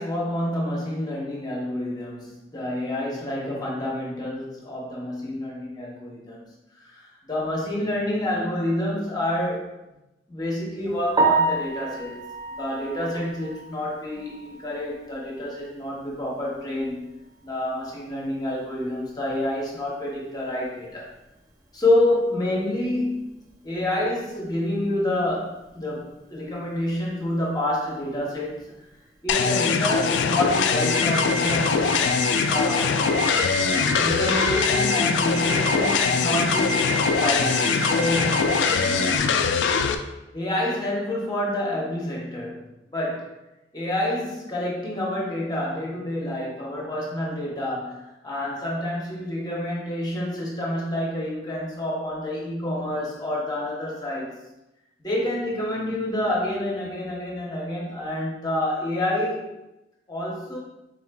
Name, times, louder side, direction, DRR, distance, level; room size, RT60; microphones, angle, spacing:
voice 1, 0.0-6.4 6.8-9.7 10.3-12.3 12.6-17.1 17.4-21.1 21.7-23.3 23.6-28.6 29.2-33.0 34.0-39.3 40.3-43.3 43.7-54.4 55.0-59.5 60.1-60.6, left 1 dB, 20° left, -4 dB, 0.8 m, -28 dB
Piano, 11.1-15.1 15.5-15.6 16.1-16.2 16.5-16.6 19.7-19.8 28.3-28.6, right 3 dB, 20° right, 0.5 m, -27 dB
sound 1, 29.3-39.9, left 5 dB, 75° left, 0.3 m, -22 dB
sound 2, 30.5-39.2, right 1 dB, 85° right, 0.5 m, -31 dB
3.9 x 3.7 x 2.2 m, 0.94 s
head